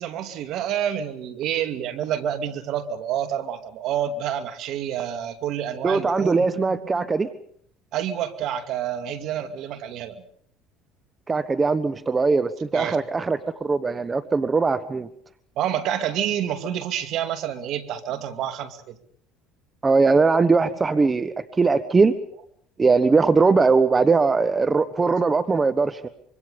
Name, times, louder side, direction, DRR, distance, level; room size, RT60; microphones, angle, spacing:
voice 1, 0.0-7.1 7.9-10.2 12.7-13.0 15.6-19.0, right 10 dB, 60° right, 10 dB, 2.5 m, -28 dB
voice 2, 5.8-7.3 11.3-15.1 19.8-22.1 22.8-26.1, right 4 dB, 25° right, 12 dB, 1.2 m, -20 dB
25.5 x 24.0 x 5.4 m, 0.64 s
hypercardioid pair, 80°, 0 cm